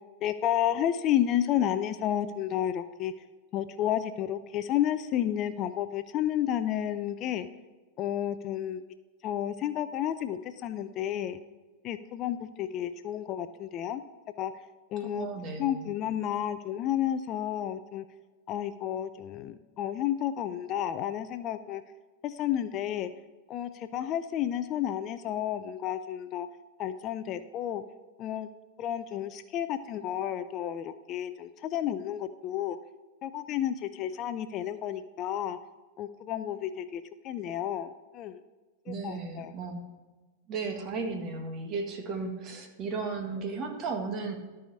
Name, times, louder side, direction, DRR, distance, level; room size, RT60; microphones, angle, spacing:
voice 1, 0.2-3.1 3.5-7.5 8.0-8.8 9.2-11.4 11.8-14.0 14.4-14.5 14.9-15.3 15.6-18.0 18.5-21.8 22.2-23.1 23.5-26.5 26.8-27.8 28.2-28.5 28.8-32.8 33.2-35.6 36.0-38.4 38.9-39.5, left 11 dB, 40° left, 12 dB, 0.5 m, -31 dB
voice 2, 15.0-15.9 38.9-39.8 40.5-44.4, right 4 dB, 35° right, 4 dB, 1.7 m, -35 dB
13.0 x 4.9 x 5.5 m, 1.2 s
figure-of-eight pair, 95°, 0 cm